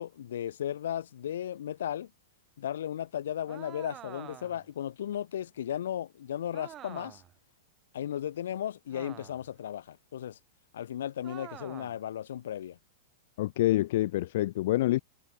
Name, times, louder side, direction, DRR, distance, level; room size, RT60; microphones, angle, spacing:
voice 1, 0.0-2.1 2.6-7.2 7.9-10.4 10.7-12.8, left 10 dB, 80° left, 1.5 m, -35 dB
sound 1, 3.5-4.7 6.5-7.4 8.9-9.6 11.2-12.0, right 11 dB, 30° right, 4.7 m, -47 dB
voice 2, 13.4-15.0, left 15 dB, 65° left, 0.7 m, -26 dB
hypercardioid pair, 130°, 0 cm